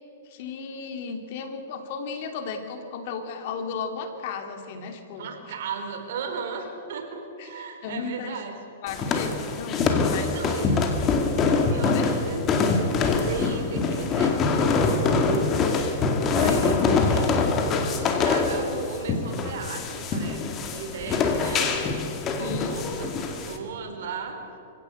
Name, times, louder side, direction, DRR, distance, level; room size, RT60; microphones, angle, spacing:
voice 1, 0.2-5.3 7.4-8.4 8.8-10.4 11.9-12.1 22.4-22.7, left 5 dB, 50° left, 6 dB, 2.9 m, -34 dB
voice 2, 5.1-8.6 10.3-10.9 11.4-12.4 13.2-15.6 16.3-17.3 18.0-24.4, right 5 dB, 65° right, 4 dB, 4.2 m, -35 dB
sound 1, 8.9-23.6, left 4 dB, 25° left, 2.2 m, -24 dB
25.0 x 16.5 x 8.0 m, 2.7 s
hypercardioid pair, 145°, 0 cm